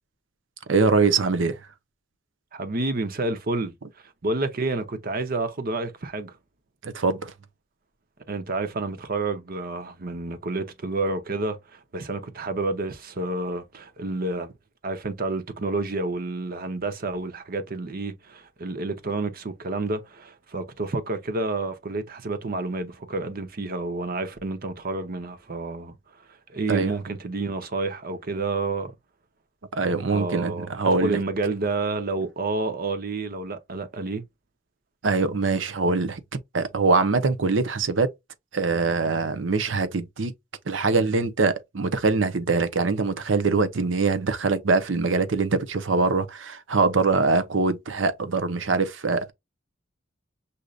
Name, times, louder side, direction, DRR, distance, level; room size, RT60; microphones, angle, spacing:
voice 1, 0.7-1.6 6.8-7.3 26.7-26.9 29.7-31.2 35.0-36.2 36.5-38.1 38.5-40.3 40.7-49.3, right 4 dB, 85° right, 0.8 m, -23 dB
voice 2, 2.5-3.7 4.2-6.4 8.3-14.5 14.8-26.0 26.5-28.9 30.1-34.2, right 3 dB, 50° right, 0.8 m, -29 dB
6.4 x 2.8 x 2.4 m
head